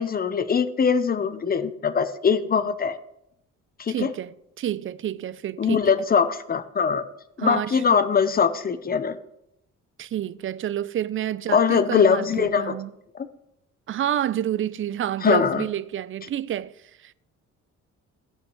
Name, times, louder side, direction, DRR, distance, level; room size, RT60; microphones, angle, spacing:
voice 1, 0.0-3.0 3.8-4.1 5.6-7.1 7.4-9.2 11.5-12.8 13.1-13.3 15.2-15.7, left 6 dB, 30° left, 0.7 m, -22 dB
voice 2, 3.9-5.9 7.4-7.8 10.0-12.9 13.9-16.8 17.0-17.1, right 11 dB, 45° right, 0.4 m, -29 dB
15.5 x 6.3 x 3.1 m
cardioid pair, 90°, 30 cm